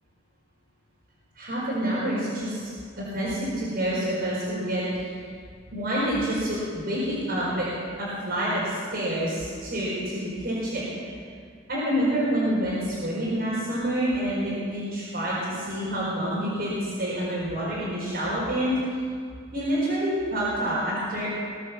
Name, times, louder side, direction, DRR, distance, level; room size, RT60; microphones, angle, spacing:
voice 1, 1.3-5.0 5.7-7.7 8.0-10.8 11.7-18.7 19.5-21.3, right 1 dB, 55° right, -9 dB, 4.9 m, -27 dB
21.0 x 8.4 x 7.1 m, 2.1 s
head